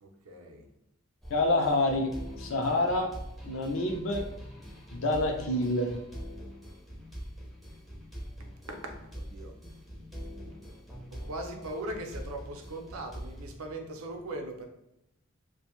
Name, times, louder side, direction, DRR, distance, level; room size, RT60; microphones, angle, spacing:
voice 1, 0.0-0.6 8.8-9.5 11.2-14.7, right 1 dB, 80° right, 3 dB, 0.5 m, -39 dB
sound 1, 1.2-13.6, equal, ahead, 0.4 m, -44 dB
voice 2, 1.3-2.1 2.4-3.1 3.4-4.2 4.9-5.9, left 2 dB, 65° left, 3 dB, 0.5 m, -27 dB
2.5 x 2.2 x 2.9 m, 0.83 s
head